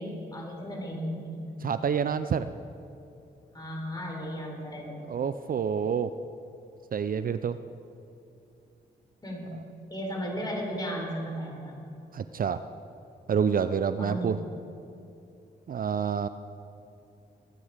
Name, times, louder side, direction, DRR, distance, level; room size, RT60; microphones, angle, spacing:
voice 1, 0.0-1.4 3.5-5.0 9.2-9.5 9.9-11.8 14.0-14.5, equal, 20° left, -1 dB, 4.4 m, -35 dB
voice 2, 1.6-2.5 5.1-6.1 6.9-7.6 12.1-12.6 13.3-14.4 15.7-16.3, right 7 dB, 55° right, 12 dB, 0.5 m, -27 dB
22.0 x 9.3 x 5.0 m, 2.7 s
cardioid pair, 80°, 18 cm